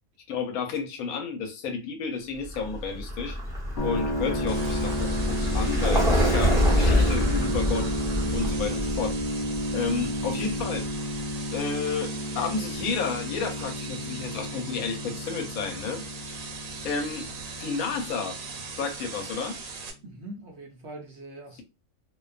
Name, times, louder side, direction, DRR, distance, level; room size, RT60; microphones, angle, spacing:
voice 1, 0.3-3.4 3.8-7.9 8.3-9.4 9.7-10.9 11.5-16.4 16.8-17.3 17.6-18.4 18.8-19.6, left 5 dB, 80° left, 1.1 m, -31 dB
Vehicle, 2.4-11.2, equal, 5° right, 0.8 m, -26 dB
sound 1, 3.8-19.7, left 1 dB, 60° left, 0.8 m, -32 dB
sound 2, 4.5-19.9, right 5 dB, 85° right, 1.1 m, -40 dB
voice 2, 20.0-21.6, right 1 dB, 60° right, 0.7 m, -42 dB
2.5 x 2.2 x 2.3 m
omnidirectional pair, 1.5 m